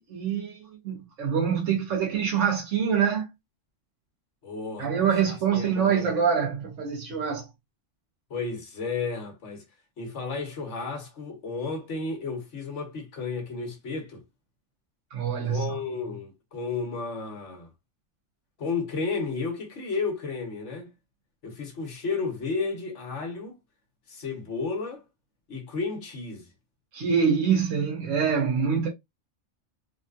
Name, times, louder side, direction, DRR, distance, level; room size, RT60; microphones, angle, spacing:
voice 1, 0.0-3.3 4.8-7.5 15.1-15.8 26.9-28.9, right 7 dB, 75° right, 1.2 m, -25 dB
voice 2, 4.4-6.1 8.3-9.6 10.0-14.2 15.4-17.7 18.6-20.9 21.4-23.6 24.1-25.0 25.5-26.5, left 4 dB, 70° left, 1.3 m, -33 dB
3.5 x 2.3 x 2.6 m
omnidirectional pair, 1.3 m